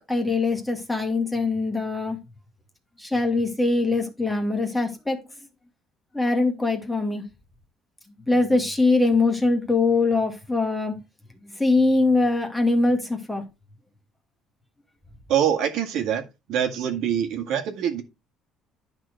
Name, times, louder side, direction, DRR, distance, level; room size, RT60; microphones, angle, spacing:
voice 1, 0.1-2.2 3.0-5.2 6.1-7.2 8.3-11.0 11.6-13.4, left 3 dB, 5° left, 1.8 m, -22 dB
voice 2, 15.3-16.2 16.5-18.0, right 9 dB, 60° right, 2.1 m, -24 dB
11.0 x 4.4 x 5.0 m
cardioid pair, 175°, 0 cm